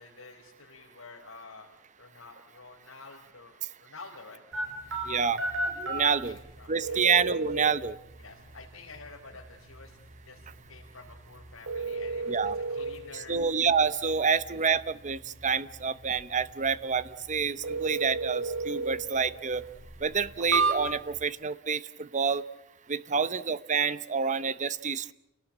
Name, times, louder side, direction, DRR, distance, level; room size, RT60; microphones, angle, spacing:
voice 1, 0.0-1.7 2.0-4.8 6.0-7.0 8.2-10.0 10.2-13.4 23.1-23.3, left 4 dB, 75° left, -3 dB, 4.4 m, -50 dB
sound 1, 4.5-21.2, right 3 dB, 65° right, 5.4 m, -35 dB
voice 2, 5.1-6.4 6.7-8.0 12.3-12.6 13.1-19.6 20.0-22.4 22.9-25.1, right 5 dB, 35° right, 15 dB, 0.8 m, -28 dB
29.0 x 18.5 x 8.7 m, 0.91 s
head